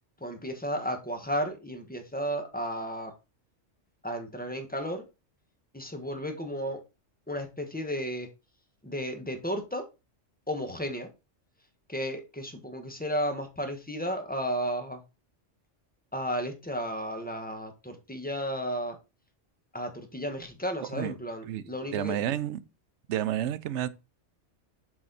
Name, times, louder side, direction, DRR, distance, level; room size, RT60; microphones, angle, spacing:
voice 1, 0.2-3.1 4.0-5.0 5.7-6.8 7.3-8.3 8.8-9.8 10.5-11.1 11.9-15.0 16.1-19.0 19.7-22.2, equal, 10° left, 1.1 m, -33 dB
voice 2, 20.8-21.1 21.5-22.6 23.1-23.9, right 11 dB, 75° right, 0.9 m, -31 dB
7.6 x 4.2 x 4.0 m
omnidirectional pair, 1.2 m